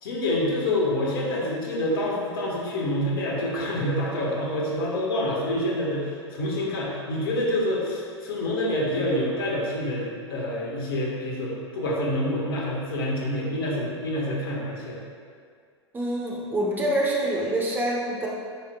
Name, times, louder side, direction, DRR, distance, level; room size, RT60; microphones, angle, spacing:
voice 1, 0.0-15.0, left 1 dB, 55° left, -3 dB, 1.6 m, -27 dB
voice 2, 15.9-18.3, right 1 dB, 15° right, -4 dB, 1.1 m, -26 dB
9.9 x 5.7 x 2.4 m, 2.1 s
figure-of-eight pair, 90°, 14 cm